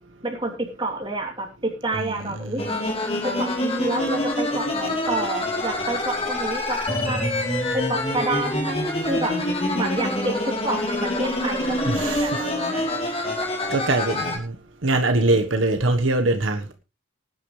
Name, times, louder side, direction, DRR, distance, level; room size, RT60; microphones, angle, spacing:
voice 1, 0.2-2.6 3.2-7.4 7.7-9.4 9.7-12.8, right 2 dB, 25° right, 3.2 m, -29 dB
voice 2, 2.2-2.7 11.8-12.5 13.7-14.6 14.8-16.7, right 2 dB, 75° right, 1.3 m, -23 dB
sound 1, 2.6-14.4, left 1 dB, 30° left, 3.5 m, -26 dB
19.5 x 9.5 x 3.3 m
head